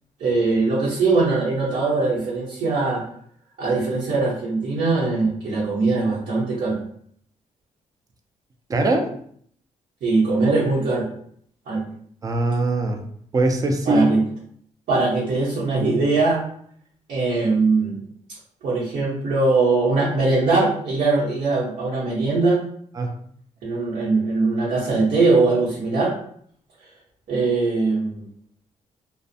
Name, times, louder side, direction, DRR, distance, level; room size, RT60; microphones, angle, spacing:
voice 1, 0.2-3.0 3.6-6.8 10.0-11.1 11.7-11.8 13.8-14.2 14.9-16.4 17.1-18.0 18.6-22.6 23.6-26.1 27.3-28.2, right 3 dB, 75° right, -8 dB, 0.9 m, -21 dB
voice 2, 8.7-9.1 12.2-13.0 13.3-14.1 23.0-23.1, right 2 dB, 25° right, 4 dB, 0.4 m, -21 dB
2.4 x 2.0 x 2.7 m, 0.63 s
cardioid pair, 110°, 13 cm